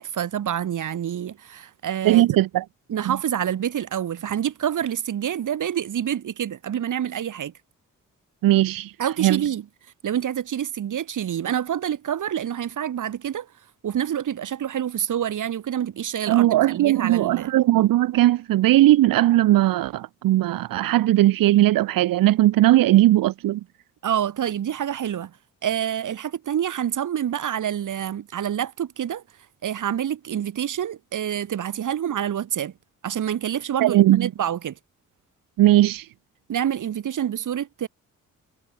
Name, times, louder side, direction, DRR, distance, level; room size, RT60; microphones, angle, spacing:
voice 1, 0.0-2.2 2.9-7.5 9.0-9.6 10.0-13.5 13.8-17.5 24.0-25.3 25.6-29.2 29.6-32.7 33.0-34.7 36.5-37.9, right 9 dB, 65° right, 1.6 m, -27 dB
voice 2, 2.0-2.6 3.1-3.2 8.4-8.9 9.2-9.4 16.3-23.6 33.8-34.3 35.6-36.1, right 15 dB, 85° right, 0.9 m, -18 dB
cardioid pair, 70°, 33 cm